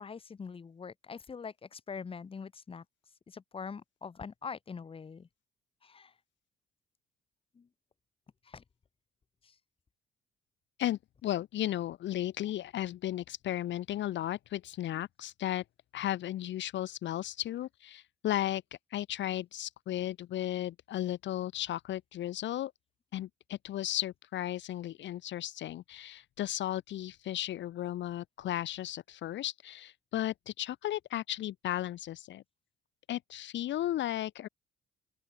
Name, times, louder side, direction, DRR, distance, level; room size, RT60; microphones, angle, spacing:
voice 1, 0.0-2.8 3.3-5.3 5.8-6.1 7.5-7.7 8.4-8.6 9.4-9.6, left 5 dB, 30° left, 0.7 m, -43 dB
voice 2, 10.8-15.6 15.9-18.6 18.9-22.7 23.1-32.4 33.1-34.5, left 13 dB, 65° left, 0.6 m, -35 dB
open air
cardioid pair, 90°, 20 cm